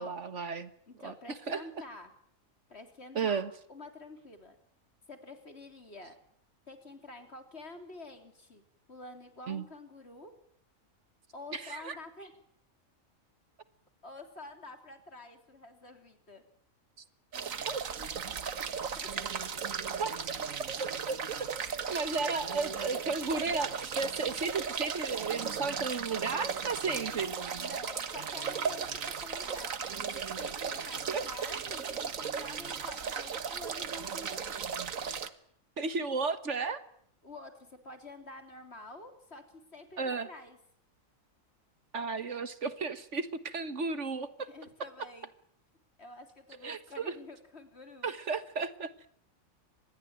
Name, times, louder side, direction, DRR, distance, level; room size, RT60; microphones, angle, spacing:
voice 1, 0.0-0.7 1.0-1.7 3.1-3.5 9.5-9.6 11.5-12.0 17.6-17.8 20.0-20.1 20.8-21.2 21.9-27.3 31.1-31.5 35.8-36.8 40.0-40.3 41.9-44.5 46.6-47.1 48.0-49.1, right 4 dB, 60° right, 13 dB, 1.7 m, -34 dB
voice 2, 0.9-2.1 2.7-3.4 3.7-4.6 5.1-6.2 6.7-8.6 8.9-10.3 11.3-12.3 14.0-16.4 18.8-20.1 27.5-34.7 37.2-40.6 44.4-45.3 46.0-48.1, left 2 dB, 50° left, 7 dB, 3.7 m, -49 dB
sound 1, 17.3-35.3, right 6 dB, 75° right, 1.8 m, -36 dB
25.5 x 20.5 x 9.0 m, 0.64 s
omnidirectional pair, 1.4 m